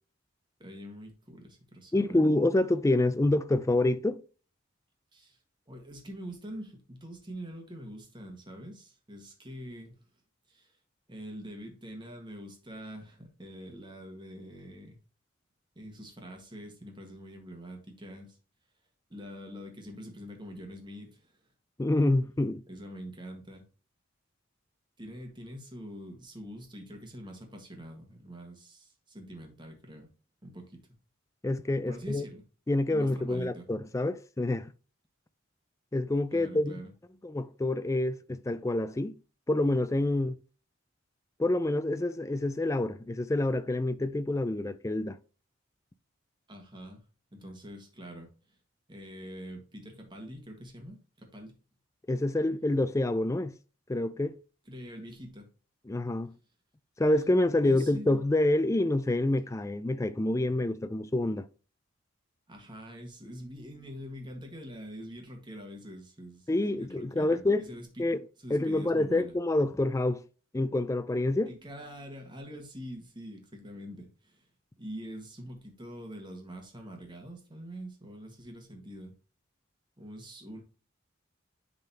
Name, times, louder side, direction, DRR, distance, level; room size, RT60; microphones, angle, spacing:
voice 1, 0.6-2.2 5.1-5.4 5.7-10.0 10.5-10.8 11.1-15.0 15.7-18.4 19.1-21.4 22.7-23.6 25.0-30.1 30.4-30.8 31.9-32.4 32.9-33.6 36.3-36.9 46.5-47.0 47.3-48.6 48.9-51.6 54.7-55.5 57.6-58.1 62.5-69.3 71.5-74.5 74.8-79.1 80.0-80.6, equal, 20° right, 1.5 m, -45 dB
voice 2, 1.9-4.2 21.8-22.6 31.4-32.2 32.7-34.7 35.9-36.7 37.2-39.2 39.5-40.4 41.4-45.2 52.1-53.5 53.9-54.4 55.9-56.3 57.0-61.5 66.5-67.7 68.0-68.2 68.5-70.2 70.5-71.5, left 2 dB, 15° left, 0.3 m, -27 dB
10.5 x 3.8 x 2.8 m
head